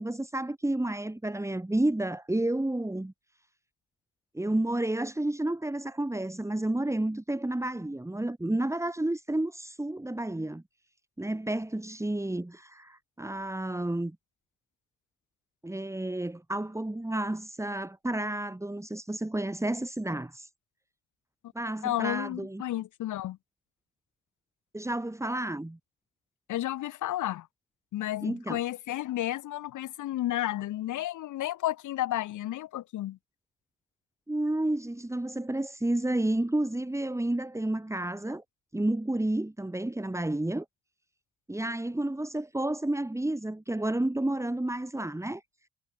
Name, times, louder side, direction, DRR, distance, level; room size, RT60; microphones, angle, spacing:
voice 1, 0.0-3.1 4.3-10.6 11.2-14.2 15.6-20.5 21.5-22.6 24.7-25.8 28.2-28.6 34.3-38.4 38.7-40.7 41.5-45.4, right 1 dB, 10° right, 5.6 m, -31 dB
voice 2, 21.8-23.4 26.5-27.5 27.9-33.2, left 14 dB, 80° left, 2.0 m, -32 dB
cardioid pair, 90°, 30 cm